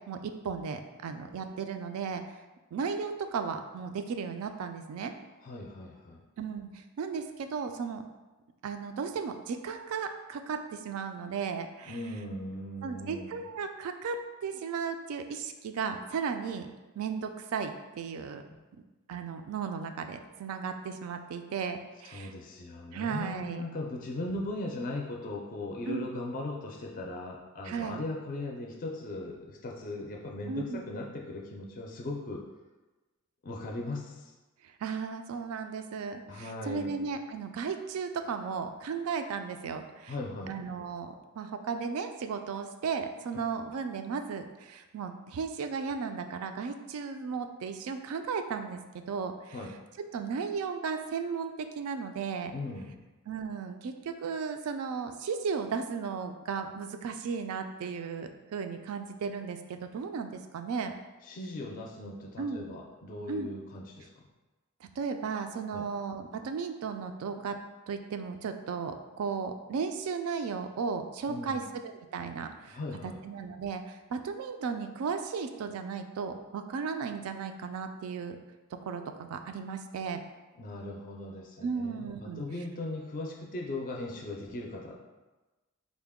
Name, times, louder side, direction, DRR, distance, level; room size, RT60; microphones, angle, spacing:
voice 1, 0.1-2.2 2.7-5.1 6.4-8.0 8.6-12.0 12.8-16.7 17.0-18.4 19.1-22.3 22.9-23.6 25.9-26.1 27.6-28.0 30.5-30.8 34.8-40.1 40.5-48.8 49.1-49.6 50.1-52.5 53.3-60.9 62.4-62.6 63.3-63.5 64.8-67.6 67.9-78.4 78.8-80.2 81.6-82.4, right 5 dB, 70° right, 7 dB, 0.3 m, -35 dB
voice 2, 5.4-6.2 11.9-13.4 18.5-18.6 22.1-32.4 33.4-34.3 36.3-36.9 40.1-40.5 49.5-49.7 52.5-53.0 61.2-64.2 65.7-65.9 71.3-71.7 72.7-73.2 80.6-85.0, left 2 dB, 40° left, 0 dB, 0.4 m, -38 dB
3.8 x 2.1 x 3.5 m, 1.1 s
head